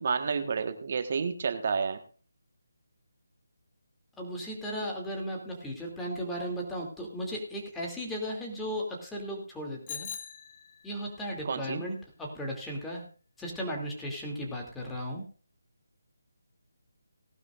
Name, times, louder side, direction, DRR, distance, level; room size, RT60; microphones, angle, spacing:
voice 1, 0.0-2.0 11.4-11.8, right 5 dB, 45° right, 7 dB, 1.5 m, -30 dB
voice 2, 4.2-10.1 10.8-13.0 13.4-15.2, equal, 5° left, -1 dB, 2.8 m, -36 dB
Bicycle bell, 9.9-11.1, left 6 dB, 30° left, 1.5 m, -41 dB
18.5 x 12.0 x 2.6 m, 0.40 s
figure-of-eight pair, 155°, 0 cm